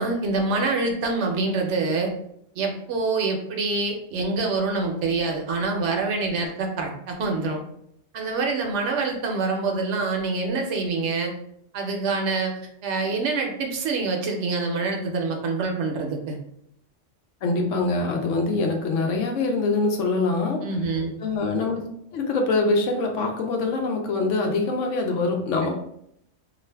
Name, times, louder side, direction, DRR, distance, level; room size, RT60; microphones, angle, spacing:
voice 1, 0.0-2.1 2.6-7.6 8.1-11.3 11.7-16.4 20.6-21.1 25.6-25.7, right 3 dB, 75° right, 2 dB, 0.9 m, -26 dB
voice 2, 17.4-20.6 21.2-21.8 22.1-25.7, left 3 dB, 80° left, 2 dB, 1.0 m, -24 dB
2.5 x 2.4 x 3.2 m, 0.73 s
omnidirectional pair, 1.3 m